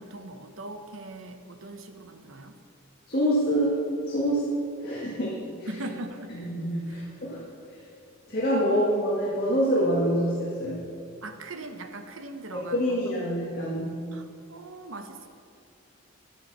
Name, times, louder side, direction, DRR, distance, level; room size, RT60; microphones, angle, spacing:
voice 1, 0.0-2.6 5.7-6.4 6.9-7.0 11.2-13.1 14.1-15.3, right 2 dB, 70° right, 7 dB, 1.0 m, -40 dB
voice 2, 3.1-3.8 4.1-4.5 4.8-5.7 6.3-7.4 7.7-7.8 8.3-10.9 12.5-14.0, equal, 45° left, -6 dB, 1.9 m, -26 dB
11.5 x 9.7 x 5.6 m, 2.4 s
head